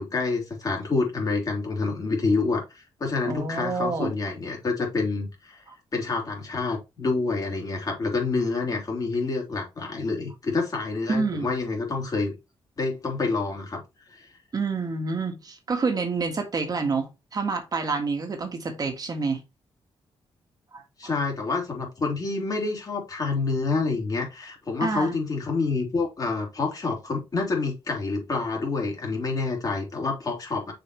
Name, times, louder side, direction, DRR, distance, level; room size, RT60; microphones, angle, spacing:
voice 1, 0.0-5.6 5.9-12.3 12.8-13.8 14.1-14.3 21.0-30.7, left 3 dB, 40° left, 3.4 m, -27 dB
voice 2, 3.2-4.1 11.1-11.5 14.5-19.4 20.7-20.8 24.8-25.2, right 4 dB, 40° right, 1.6 m, -28 dB
6.6 x 5.2 x 3.1 m
cardioid pair, 115°, 10 cm